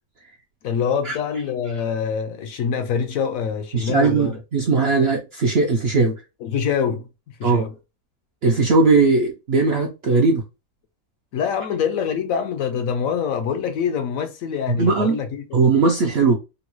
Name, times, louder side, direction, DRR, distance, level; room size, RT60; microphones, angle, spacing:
voice 1, 0.6-4.4 6.4-7.1 7.4-7.7 11.3-15.4, left 7 dB, 70° left, 0.9 m, -25 dB
voice 2, 3.7-6.1 7.4-7.6 8.4-10.4 14.7-15.2 15.5-16.4, right 4 dB, 60° right, 0.6 m, -18 dB
3.8 x 2.1 x 3.0 m
omnidirectional pair, 1.6 m